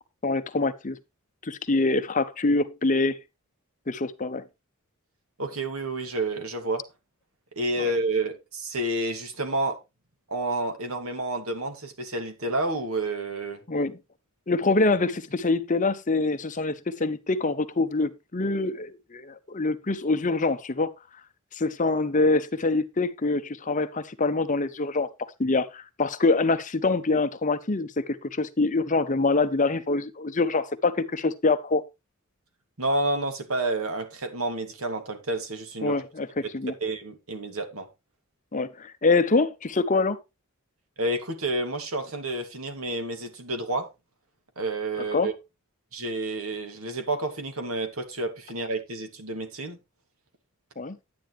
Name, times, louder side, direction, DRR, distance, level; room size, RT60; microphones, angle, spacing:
voice 1, 0.2-1.0 1.4-3.2 3.9-4.4 13.7-14.0 14.5-20.9 21.5-25.1 25.4-31.8 35.8-36.7 38.5-40.2 45.1-45.3 50.8-51.0, left 3 dB, 35° left, 0.8 m, -25 dB
voice 2, 5.4-6.9 7.6-9.8 10.3-13.6 32.8-36.0 36.8-37.9 41.0-43.9 44.6-45.3 45.9-49.8, right 2 dB, 75° right, 2.4 m, -29 dB
10.5 x 9.8 x 3.2 m
head